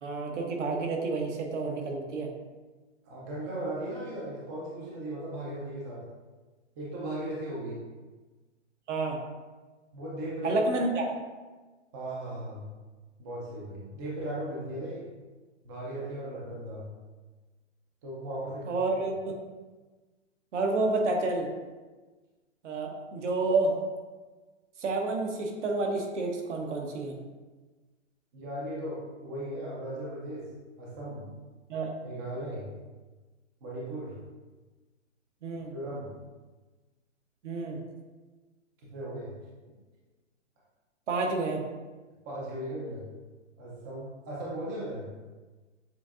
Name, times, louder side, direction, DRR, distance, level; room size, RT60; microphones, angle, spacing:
voice 1, 0.0-2.3 8.9-9.2 10.4-11.1 18.7-19.4 20.5-21.5 22.6-23.7 24.8-27.2 31.7-31.9 35.4-35.7 37.4-37.8 41.1-41.6, right 3 dB, 70° right, 2 dB, 1.0 m, -29 dB
voice 2, 3.1-6.0 6.8-7.8 9.9-10.8 11.9-12.7 13.2-15.1 15.6-16.9 18.0-18.8 28.3-30.5 30.8-31.3 32.0-32.7 33.6-34.2 35.7-36.1 38.8-39.3 42.2-43.1 43.6-45.1, right 1 dB, 15° right, -5 dB, 0.4 m, -37 dB
7.0 x 2.6 x 2.4 m, 1.3 s
hypercardioid pair, 145°, 37 cm